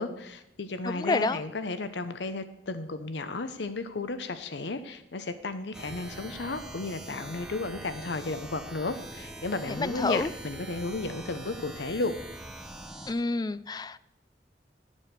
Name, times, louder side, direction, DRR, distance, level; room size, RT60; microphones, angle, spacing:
voice 1, 0.0-12.2, left 3 dB, 75° left, 10 dB, 0.8 m, -33 dB
voice 2, 0.8-1.4 9.8-10.3 13.1-14.0, left 3 dB, 20° left, 15 dB, 0.3 m, -29 dB
sound 1, 5.7-13.1, right 1 dB, 5° right, 0.9 m, -43 dB
11.0 x 7.3 x 6.7 m, 0.84 s
head